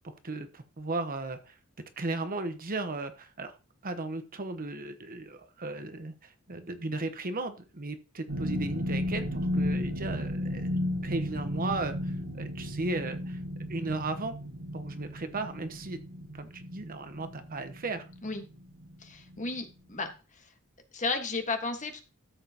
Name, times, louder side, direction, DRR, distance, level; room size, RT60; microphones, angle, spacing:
voice 1, 0.2-1.5 2.0-3.5 3.8-13.4 13.7-14.3 14.7-16.0 16.3-18.0, right 3 dB, 40° right, 8 dB, 1.0 m, -36 dB
sound 1, 8.3-19.0 19.3-19.6 20.0-20.1, left 1 dB, 85° right, 1.4 m, -34 dB
voice 2, 19.0-20.5 20.9-22.0, left 3 dB, 35° left, 5 dB, 1.4 m, -34 dB
13.5 x 7.4 x 2.9 m, 0.31 s
head